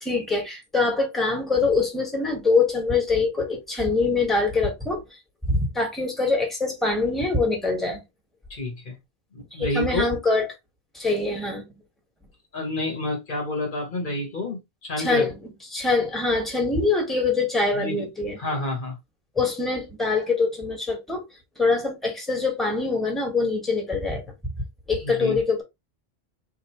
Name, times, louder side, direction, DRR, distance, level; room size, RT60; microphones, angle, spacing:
voice 1, 0.0-5.0 5.5-8.0 9.5-10.5 10.9-11.6 15.0-18.4 19.3-21.2 21.6-24.2 24.9-25.6, left 3 dB, ahead, 1.4 m, -24 dB
voice 2, 8.5-9.0 9.3-10.0 12.5-15.3 17.7-18.1 18.4-19.0 25.0-25.4, left 2 dB, 55° left, 1.2 m, -29 dB
4.2 x 2.9 x 3.0 m
omnidirectional pair, 1.0 m